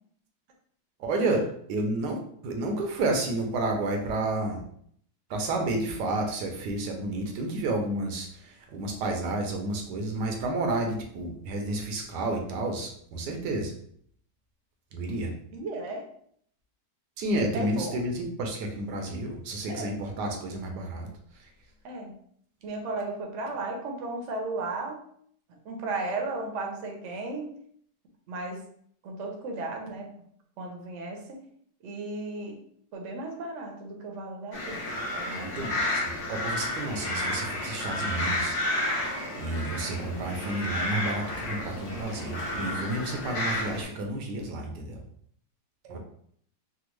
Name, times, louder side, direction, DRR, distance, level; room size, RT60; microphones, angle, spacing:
voice 1, 1.0-1.4 1.7-4.6 5.3-13.7 14.9-15.3 17.2-21.1 21.3-21.5 35.4-36.0 36.3-45.0 45.9-46.0, right 2 dB, 80° right, 2 dB, 1.2 m, -31 dB
voice 2, 15.5-16.1 17.5-18.0 19.7-19.9 21.8-22.1 22.6-25.0 25.6-27.5 28.3-28.6 29.0-30.1 30.6-31.4 31.8-32.6 32.9-34.8 35.1-35.9 45.8-46.0, right 2 dB, 60° right, 2 dB, 0.8 m, -35 dB
sound 1, 34.5-43.8, left 1 dB, 50° left, 0.8 m, -31 dB
3.4 x 2.0 x 3.0 m, 0.64 s
omnidirectional pair, 1.8 m